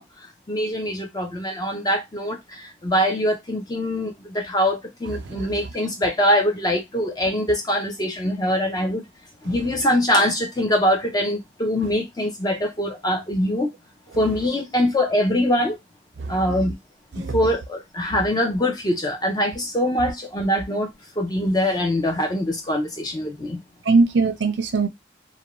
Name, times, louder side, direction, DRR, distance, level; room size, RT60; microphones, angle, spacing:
voice 1, 0.0-9.0 9.4-13.7 14.2-15.8 16.3-16.7 17.2-20.9 21.2-23.6, left 1 dB, 20° left, 0.4 m, -23 dB
voice 2, 16.2-16.6 17.1-17.3 23.9-24.9, right 4 dB, 65° right, 0.5 m, -21 dB
2.5 x 2.1 x 2.9 m
head